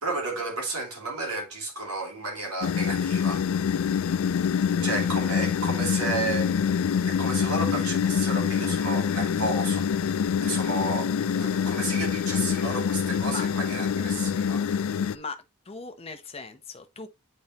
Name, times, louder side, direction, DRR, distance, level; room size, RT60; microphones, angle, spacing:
voice 1, 0.0-3.5 4.8-9.9 10.4-11.1 11.4-15.0, right 2 dB, 85° right, 2.6 m, -32 dB
sound 1, 2.6-15.2, left 7 dB, 65° left, 0.3 m, -26 dB
voice 2, 15.1-17.1, left 4 dB, 25° left, 0.8 m, -39 dB
8.7 x 4.3 x 2.9 m
head